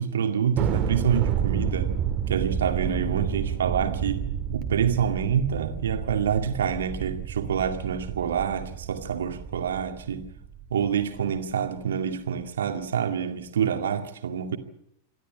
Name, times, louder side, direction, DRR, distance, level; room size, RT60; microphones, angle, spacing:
voice 1, 0.0-1.9 2.3-4.2 4.5-10.3 10.7-14.6, right 7 dB, 65° right, 2.1 m, -27 dB
Thunder, 0.6-11.2, right 8 dB, 35° right, 2.1 m, -30 dB
28.0 x 12.5 x 8.7 m
figure-of-eight pair, 90°, 0 cm